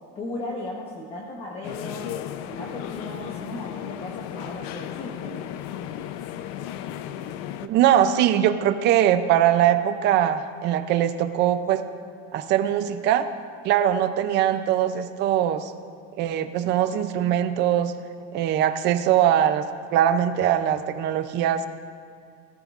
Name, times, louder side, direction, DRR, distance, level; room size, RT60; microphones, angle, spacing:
voice 1, 0.1-2.1 2.4-5.4, left 2 dB, 15° left, -2 dB, 0.9 m, -36 dB
sound 1, 1.6-7.7, left 11 dB, 60° left, 0.6 m, -35 dB
voice 2, 7.6-11.8 12.3-13.2 13.6-15.7 16.2-17.9 18.3-19.7 19.9-21.7, right 10 dB, 30° right, 11 dB, 0.4 m, -21 dB
18.5 x 13.5 x 2.4 m, 2.3 s
cardioid pair, 175°, 36 cm